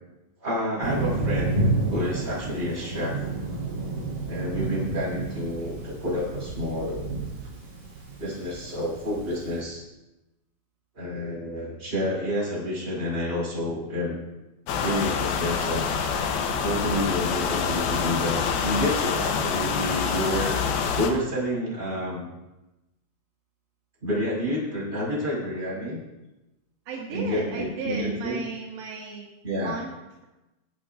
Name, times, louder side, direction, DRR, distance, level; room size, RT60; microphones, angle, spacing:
voice 1, 0.4-1.6 1.9-3.1 4.3-7.1 8.2-9.8 10.9-14.2 14.8-15.9 16.6-22.3 24.0-26.0 27.1-28.4 29.4-29.8, left 1 dB, 15° right, -6 dB, 5.3 m, -29 dB
Thunder, 0.8-9.6, right 2 dB, 35° right, 5.2 m, -30 dB
sound 1, 14.7-21.1, left 6 dB, 75° left, 2.5 m, -26 dB
voice 2, 26.9-29.3 29.6-29.9, right 4 dB, 75° right, -3 dB, 3.7 m, -34 dB
25.5 x 8.7 x 2.6 m, 0.99 s
omnidirectional pair, 5.1 m